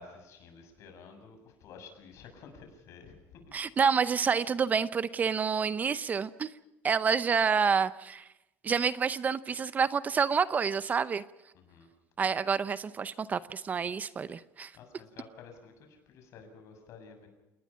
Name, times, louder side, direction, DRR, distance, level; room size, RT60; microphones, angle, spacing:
voice 1, 0.0-3.4 11.7-11.9 14.7-17.3, left 5 dB, 60° left, 5 dB, 7.1 m, -51 dB
voice 2, 3.5-6.5 6.8-8.3 8.6-11.2 12.2-14.7, right 6 dB, 30° right, 15 dB, 0.7 m, -28 dB
29.0 x 20.0 x 5.7 m, 0.97 s
cardioid pair, 135°, 6 cm